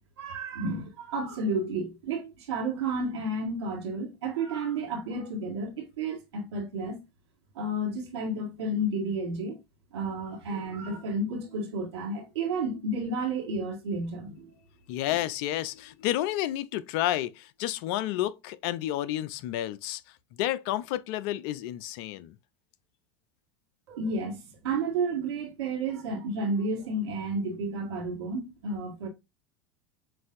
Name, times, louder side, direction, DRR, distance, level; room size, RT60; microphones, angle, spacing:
voice 1, 0.2-7.0 7.6-9.6 9.9-14.6 23.9-29.1, right 2 dB, 80° right, 1.7 m, -31 dB
voice 2, 14.9-20.0 20.4-22.3, left 13 dB, 60° left, 0.5 m, -30 dB
7.3 x 2.7 x 2.5 m
hypercardioid pair, 90°, 14 cm